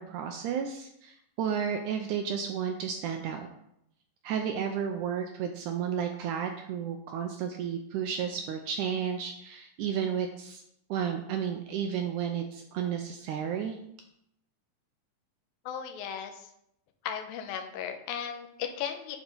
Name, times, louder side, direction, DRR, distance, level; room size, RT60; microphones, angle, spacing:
voice 1, 0.0-3.5 4.2-10.6 10.9-13.8, right 8 dB, 80° right, 4 dB, 1.8 m, -32 dB
voice 2, 15.7-16.5 17.0-19.2, left 8 dB, 85° left, 5 dB, 2.6 m, -36 dB
8.8 x 4.3 x 5.3 m, 0.76 s
omnidirectional pair, 4.1 m